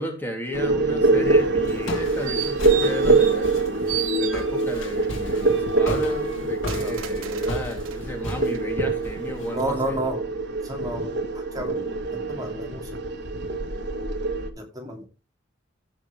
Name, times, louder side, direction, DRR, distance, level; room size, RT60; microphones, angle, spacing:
voice 1, 0.0-3.6 4.2-9.8 11.6-12.5, equal, 10° left, 2 dB, 2.7 m, -34 dB
sound 1, 0.5-14.5, right 3 dB, 60° right, 1.4 m, -24 dB
Walk footsteps, 1.0-9.6, left 1 dB, 70° left, 2.5 m, -36 dB
sound 2, 1.7-3.6 3.9-4.9 5.4-8.0 8.5-8.6, right 11 dB, 75° right, 1.2 m, -35 dB
voice 2, 6.7-7.0 9.5-10.2 10.6-11.1 11.3-11.8 12.1-13.0 14.6-15.0, right 1 dB, 20° right, 1 dB, 2.6 m, -31 dB
17.0 x 5.9 x 3.3 m, 0.29 s
head